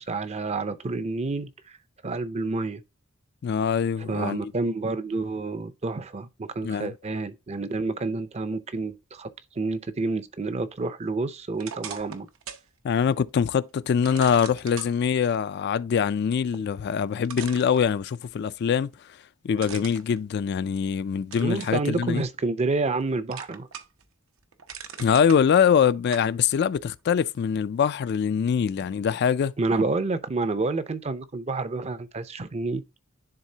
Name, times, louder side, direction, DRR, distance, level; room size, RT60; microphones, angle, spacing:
voice 1, 0.0-1.8 2.0-2.8 4.0-9.3 9.6-12.3 21.4-23.7 29.6-32.8, right 3 dB, 30° right, 0.5 m, -29 dB
voice 2, 3.4-4.4 6.6-6.9 12.8-18.9 19.4-22.2 25.0-29.5, left 7 dB, 50° left, 0.3 m, -23 dB
sound 1, 11.6-12.7 13.1-13.2 14.0-14.9 16.7-16.8 17.2-18.3 19.6-20.9 21.3-21.8 22.3-23.0 23.3-24.0 24.4-25.4 26.1-26.3, right 7 dB, 80° right, 0.8 m, -40 dB
10.5 x 3.6 x 2.7 m
head